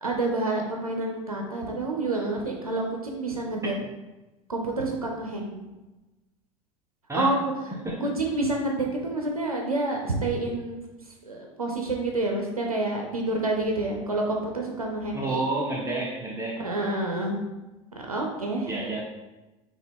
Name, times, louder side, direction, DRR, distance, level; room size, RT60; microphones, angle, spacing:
voice 1, 0.0-3.7 4.5-5.6 7.1-7.4 8.0-10.8 11.2-15.4 16.6-17.4 18.0-18.7, right 2 dB, 90° right, 1 dB, 0.6 m, -28 dB
voice 2, 15.1-16.6 18.7-19.0, right 2 dB, 15° right, -3 dB, 0.9 m, -29 dB
5.5 x 2.4 x 3.6 m, 1.1 s
figure-of-eight pair, 75°, 18 cm